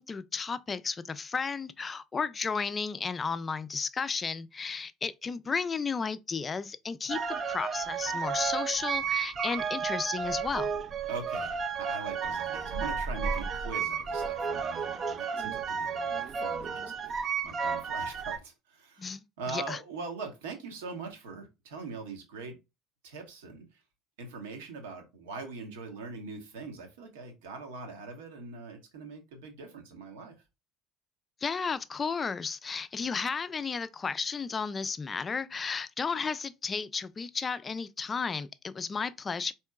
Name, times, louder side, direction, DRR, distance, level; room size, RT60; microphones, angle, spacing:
voice 1, 0.0-7.2 7.5-10.7 19.0-19.2 19.5-19.8 31.4-39.5, left 5 dB, 30° left, 0.4 m, -33 dB
sound 1, 7.1-18.4, right 6 dB, 40° right, 0.4 m, -32 dB
voice 2, 11.1-22.6 23.0-23.8 24.2-30.3, right 4 dB, 70° right, 1.0 m, -42 dB
4.4 x 2.9 x 2.2 m
figure-of-eight pair, 60°, 0 cm